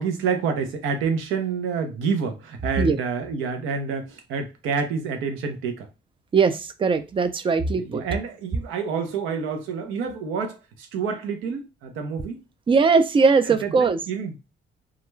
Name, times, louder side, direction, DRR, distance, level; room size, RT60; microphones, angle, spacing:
voice 1, 0.0-5.9 7.7-12.4 13.5-14.4, right 5 dB, 90° right, 0.7 m, -28 dB
voice 2, 6.3-8.0 12.7-14.0, right 4 dB, 25° right, 0.4 m, -20 dB
2.3 x 2.2 x 3.1 m
cardioid pair, 90°, 20 cm